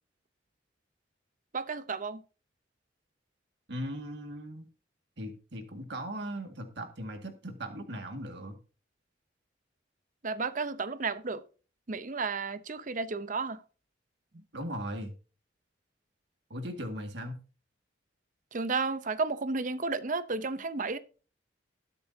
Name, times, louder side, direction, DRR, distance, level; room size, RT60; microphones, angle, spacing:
voice 1, 1.5-2.2 10.2-11.4 11.9-13.6 18.5-21.0, right 4 dB, 45° right, 0.7 m, -32 dB
voice 2, 3.7-4.7 5.2-8.6 14.5-15.1 16.5-17.4, equal, 65° right, 2.0 m, -38 dB
20.0 x 6.9 x 2.8 m
head